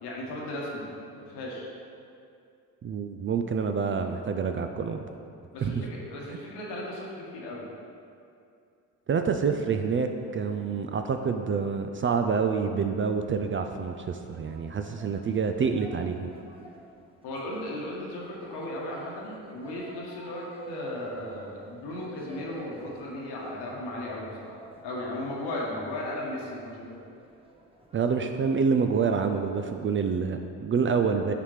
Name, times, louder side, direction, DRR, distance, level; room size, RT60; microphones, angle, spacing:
voice 1, 0.0-0.9 1.1-1.7 5.5-7.7 17.2-27.0, left 1 dB, 75° left, -3 dB, 1.4 m, -36 dB
voice 2, 2.8-5.0 5.6-5.7 6.3-6.4 9.1-16.3 27.9-31.3, right 5 dB, 30° right, 6 dB, 0.4 m, -27 dB
sound 1, 14.2-28.5, right 1 dB, 15° right, 0.9 m, -48 dB
8.1 x 4.2 x 3.2 m, 2.5 s
hypercardioid pair, 50°, 42 cm